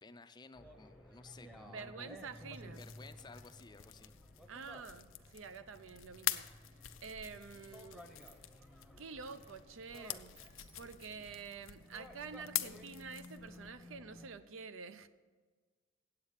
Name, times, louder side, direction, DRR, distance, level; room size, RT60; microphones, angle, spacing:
voice 1, 0.0-2.2 2.8-4.1, left 3 dB, 20° left, 11 dB, 0.4 m, -55 dB
sound 1, 0.5-14.3, left 1 dB, 5° right, 0.8 m, -55 dB
voice 2, 1.6-2.8 4.5-6.5 7.0-8.1 9.0-10.3 10.8-15.1, right 5 dB, 75° right, 12 dB, 0.5 m, -48 dB
sound 2, 2.5-13.7, left 14 dB, 80° left, 0.5 m, -45 dB
Sliding door, 6.6-11.3, right 3 dB, 30° right, 1.2 m, -68 dB
8.6 x 8.1 x 6.5 m, 1.4 s
head